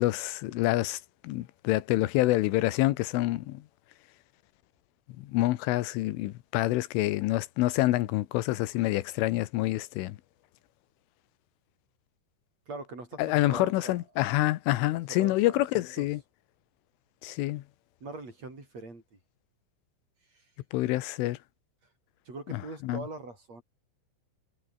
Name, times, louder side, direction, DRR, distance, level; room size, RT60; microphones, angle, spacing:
voice 1, 0.0-3.6 5.2-10.2 13.2-16.2 17.2-17.6 20.7-21.4 22.5-23.0, left 17 dB, 90° left, 3.6 m, -27 dB
voice 2, 12.7-14.0 15.1-15.6 16.0-16.1 18.0-19.2 20.3-20.5 22.3-23.6, right 3 dB, 35° right, 7.9 m, -42 dB
omnidirectional pair, 5.6 m